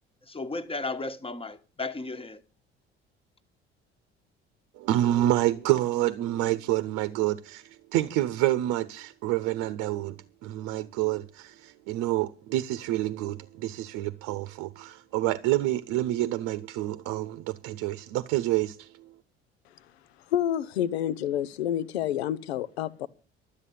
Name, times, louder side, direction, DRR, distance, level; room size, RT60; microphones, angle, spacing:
voice 1, 0.3-2.4, left 3 dB, 15° left, 1.4 m, -34 dB
voice 2, 4.8-19.1, right 15 dB, 55° right, 0.9 m, -28 dB
voice 3, 20.3-23.1, left 11 dB, 70° left, 0.8 m, -28 dB
12.5 x 8.5 x 8.4 m
figure-of-eight pair, 55°, 33 cm